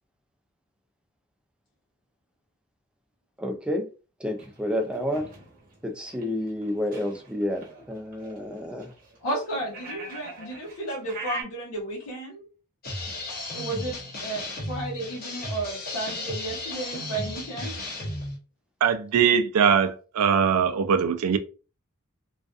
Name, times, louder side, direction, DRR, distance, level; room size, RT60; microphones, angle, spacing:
voice 1, 3.4-3.9 4.2-5.3 5.8-8.9, left 1 dB, 5° right, 0.3 m, -30 dB
sound 1, 4.3-11.4, right 3 dB, 40° right, 0.8 m, -42 dB
voice 2, 9.2-12.5 13.5-17.8, right 2 dB, 80° left, 0.8 m, -33 dB
sound 2, 12.8-18.4, left 2 dB, 40° left, 0.7 m, -34 dB
voice 3, 18.8-21.4, right 7 dB, 80° right, 0.4 m, -21 dB
2.5 x 2.3 x 2.3 m
head